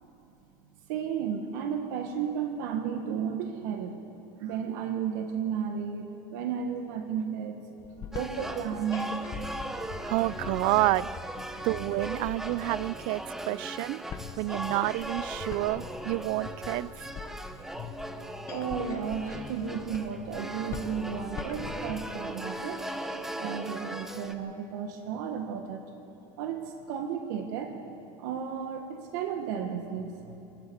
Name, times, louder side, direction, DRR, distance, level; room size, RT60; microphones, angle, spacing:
voice 1, 0.9-4.0 4.4-7.6 8.1-9.2 17.5-17.8 18.5-22.9 23.4-25.8 26.4-27.8 28.2-30.4, right 7 dB, 70° right, 4 dB, 1.7 m, -33 dB
sound 1, 7.8-22.2, left 7 dB, 25° left, 1.1 m, -43 dB
sound 2, 8.1-24.3, right 1 dB, 5° right, 0.8 m, -39 dB
voice 2, 10.0-11.1 11.6-14.0 14.4-17.1, right 20 dB, 55° right, 21 dB, 0.4 m, -29 dB
22.5 x 13.5 x 8.8 m, 2.9 s
cardioid pair, 160°, 10 cm